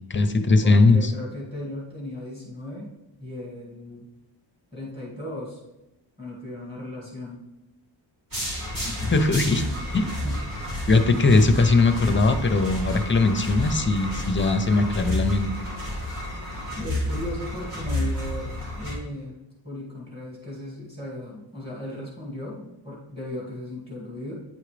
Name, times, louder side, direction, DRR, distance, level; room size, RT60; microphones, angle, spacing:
voice 1, 0.1-1.1 8.8-9.6 9.9-10.1 10.9-15.5, left 3 dB, 25° left, 7 dB, 0.6 m, -20 dB
voice 2, 0.6-2.9 3.2-4.1 4.7-5.6 6.2-7.4 10.2-10.4 10.7-10.8 11.2-11.3 16.8-19.3 19.6-24.3, left 1 dB, 10° right, -5 dB, 1.9 m, -36 dB
sound 1, 8.3-18.9, left 1 dB, 45° right, 2.4 m, -30 dB
9.1 x 4.9 x 3.3 m, 0.93 s
wide cardioid pair, 145°, 47 cm